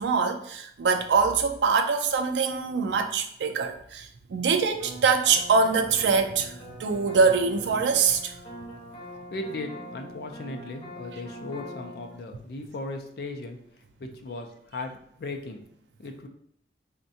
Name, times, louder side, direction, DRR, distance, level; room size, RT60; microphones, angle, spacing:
voice 1, 0.0-6.5 6.8-8.3, right 5 dB, 80° right, 0.4 m, -24 dB
sound 1, 4.8-12.2, equal, 35° left, 0.9 m, -43 dB
voice 2, 9.1-13.6 14.0-15.6 16.0-16.3, left 2 dB, 60° left, 0.4 m, -37 dB
3.5 x 2.2 x 2.6 m
head